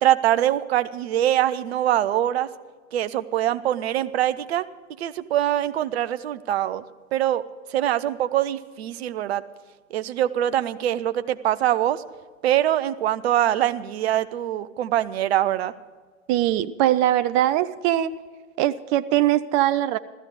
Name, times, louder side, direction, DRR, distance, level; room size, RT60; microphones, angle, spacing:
voice 1, 0.0-2.5 2.9-4.7 5.0-6.8 7.1-7.4 7.7-9.4 9.9-12.0 12.4-15.7, right 12 dB, 55° right, 13 dB, 0.8 m, -23 dB
voice 2, 16.3-18.1 18.6-20.0, right 13 dB, 25° right, 13 dB, 0.4 m, -21 dB
14.5 x 14.0 x 5.2 m, 1.4 s
figure-of-eight pair, 100°, 38 cm